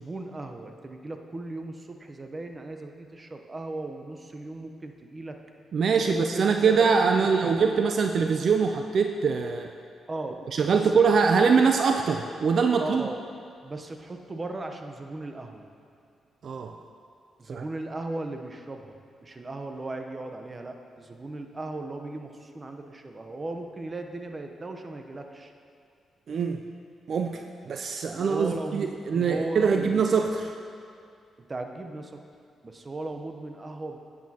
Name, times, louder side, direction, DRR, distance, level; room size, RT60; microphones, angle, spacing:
voice 1, 0.0-5.4 5.9-6.8 7.2-7.7 10.1-10.4 10.7-11.5 12.8-13.2 13.6-15.7 17.4-25.5 27.6-27.7 28.1-30.0 31.4-32.2 32.6-34.0, right 2 dB, 30° right, 4 dB, 0.7 m, -37 dB
voice 2, 5.7-9.7 10.5-13.0 16.4-16.7 17.5-17.6 26.3-26.6 27.1-27.4 27.7-30.5, right 5 dB, 60° right, 5 dB, 0.4 m, -23 dB
10.5 x 8.4 x 2.8 m, 2.4 s
cardioid pair, 80°, 0 cm